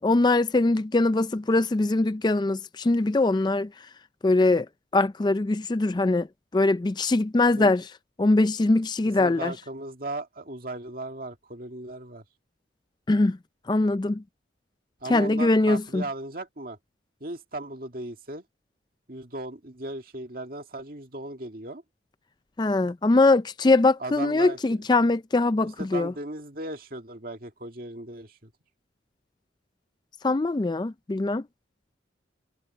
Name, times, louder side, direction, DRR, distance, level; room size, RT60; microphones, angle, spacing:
voice 1, 0.0-3.7 4.2-4.7 4.9-6.3 6.5-7.8 8.2-9.5 13.1-13.4 13.7-14.2 15.1-16.0 22.6-26.1 30.2-31.4, left 2 dB, 20° left, 0.3 m, -22 dB
voice 2, 9.0-12.2 15.0-16.8 17.2-18.4 19.1-21.8 24.0-24.8 25.6-28.5, right 2 dB, 50° right, 2.2 m, -37 dB
head